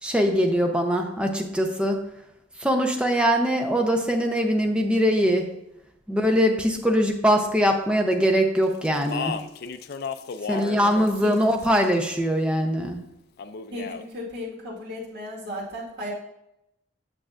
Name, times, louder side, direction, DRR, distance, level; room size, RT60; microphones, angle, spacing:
voice 1, 0.0-2.0 2.6-5.5 6.1-9.3 10.5-13.0, equal, 5° right, 3 dB, 0.7 m, -22 dB
Speech, 8.8-10.8 11.1-11.9 13.4-14.0, left 6 dB, 55° left, 0.4 m, -33 dB
voice 2, 10.5-11.3 13.7-16.1, left 1 dB, 60° right, -5 dB, 2.5 m, -35 dB
8.6 x 6.5 x 2.5 m, 0.84 s
head